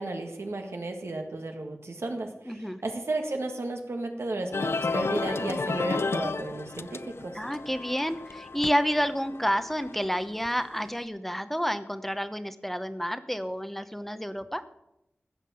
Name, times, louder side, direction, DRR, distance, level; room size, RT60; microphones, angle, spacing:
voice 1, 0.0-7.4, right 2 dB, 90° right, 3 dB, 1.8 m, -33 dB
voice 2, 2.5-2.8 7.3-14.6, equal, 5° left, 11 dB, 0.8 m, -29 dB
sound 1, 4.5-10.9, left 4 dB, 70° left, 0.4 m, -33 dB
16.0 x 5.9 x 7.6 m, 0.85 s
wide cardioid pair, 75°, 4 cm